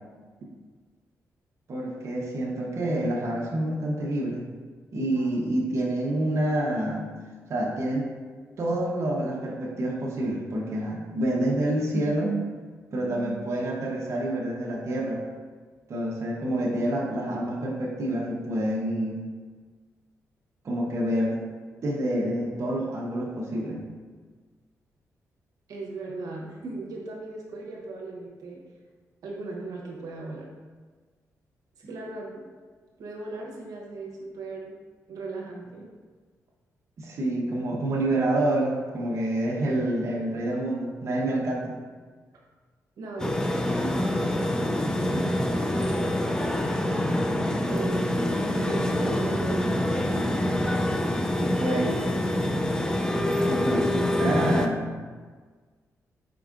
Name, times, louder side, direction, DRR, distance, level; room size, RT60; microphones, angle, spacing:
voice 1, 1.7-4.4 4.9-7.1 7.5-8.1 8.6-12.4 12.9-15.2 15.9-19.2 20.6-21.4 21.8-23.8 37.0-41.8 44.9-45.3 51.4-52.2 53.5-54.8, right 1 dB, 55° right, -3 dB, 0.8 m, -27 dB
voice 2, 25.7-28.6 29.2-30.5 31.9-32.4 33.0-34.8 35.1-35.9 43.0-43.9 47.7-48.2 48.5-49.8, right 3 dB, 80° right, -2 dB, 0.9 m, -37 dB
sound 1, 43.2-54.7, left 1 dB, 10° left, 0.4 m, -26 dB
4.8 x 4.4 x 2.4 m, 1.5 s
cardioid pair, 95°, 6 cm